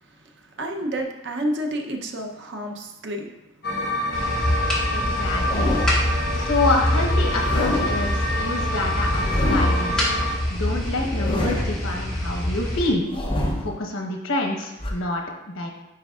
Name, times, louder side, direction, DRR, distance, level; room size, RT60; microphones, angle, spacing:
voice 1, 0.0-3.3 6.0-6.5, right 1 dB, 55° right, 2 dB, 0.8 m, -31 dB
sound 1, 3.6-10.4, left 1 dB, 50° left, 1.2 m, -27 dB
sound 2, 4.1-12.9, left 1 dB, 5° left, 1.6 m, -25 dB
voice 2, 4.9-5.8 6.5-10.2 10.5-13.1 13.6-15.7, left 2 dB, 85° left, 1 dB, 1.1 m, -27 dB
sound 3, 5.3-6.1 7.2-8.1 9.0-9.9 10.9-11.8 12.9-13.8 14.8-14.9, left 1 dB, 25° left, 0.8 m, -27 dB
9.7 x 4.6 x 2.4 m, 0.95 s
head